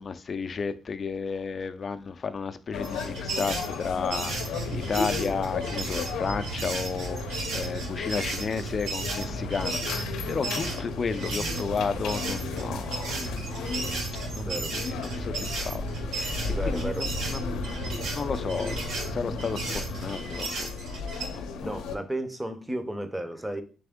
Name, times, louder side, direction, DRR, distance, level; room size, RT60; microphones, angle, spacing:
voice 1, 0.0-13.3 14.3-15.8 16.1-20.7 21.3-21.8, left 5 dB, 40° left, 0.4 m, -33 dB
sound 1, 2.7-22.0, left 5 dB, 90° left, 0.5 m, -35 dB
sound 2, 2.8-11.6 12.1-21.3, right 3 dB, 90° right, 1.2 m, -35 dB
sound 3, 4.3-20.1, right 4 dB, 70° right, 1.0 m, -38 dB
voice 2, 14.4-14.8 16.5-17.1 21.6-23.6, right 1 dB, 10° right, 0.6 m, -33 dB
3.4 x 3.4 x 3.6 m
cardioid pair, 90°, 0 cm